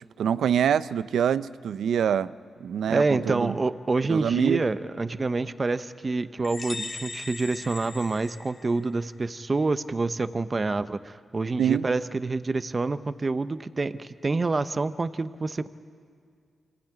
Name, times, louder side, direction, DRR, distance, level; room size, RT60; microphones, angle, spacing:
voice 1, 0.2-2.3 2.6-3.5 4.1-4.6 11.6-11.9, right 8 dB, 90° right, 16 dB, 0.5 m, -25 dB
voice 2, 2.9-15.7, right 3 dB, 35° right, 12 dB, 0.8 m, -27 dB
sound 1, 6.4-9.0, left 3 dB, 40° left, 1.0 m, -39 dB
25.0 x 16.0 x 9.6 m, 2.2 s
cardioid pair, 75°, 0 cm